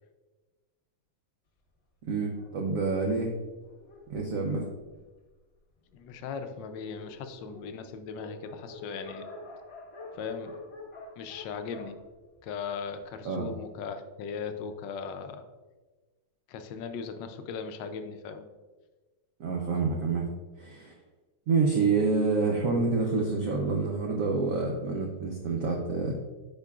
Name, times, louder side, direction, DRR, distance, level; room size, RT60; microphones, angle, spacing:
voice 1, 2.0-3.3 4.1-4.7 13.2-13.5 19.4-20.3 20.6-20.9 21.5-26.1, right 4 dB, 75° right, 0 dB, 0.7 m, -27 dB
Dog, 2.3-5.3 6.0-6.1 6.4-6.5 6.6-13.0, left 2 dB, 40° left, 1.1 m, -47 dB
voice 2, 5.9-9.3 10.1-10.6 11.2-12.0 12.4-15.4 16.5-18.4, left 6 dB, 75° left, 7 dB, 1.1 m, -38 dB
10.5 x 4.4 x 2.4 m, 1.2 s
omnidirectional pair, 2.3 m